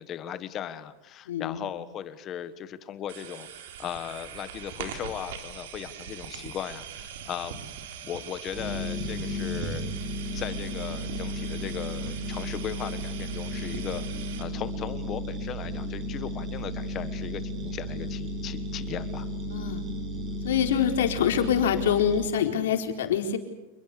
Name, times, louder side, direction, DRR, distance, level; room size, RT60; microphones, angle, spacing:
voice 1, 0.0-7.5 8.0-9.9 10.3-14.1 14.4-19.3, left 10 dB, 20° left, 13 dB, 1.5 m, -37 dB
voice 2, 1.3-1.6 19.5-19.8 20.4-23.4, left 8 dB, 80° left, 5 dB, 4.3 m, -25 dB
sound 1, 3.1-14.4, right 8 dB, 60° right, 4.2 m, -41 dB
sound 2, 8.5-22.3, equal, 20° right, 4.9 m, -34 dB
28.0 x 21.5 x 6.9 m, 0.98 s
supercardioid pair, 175°, 0 cm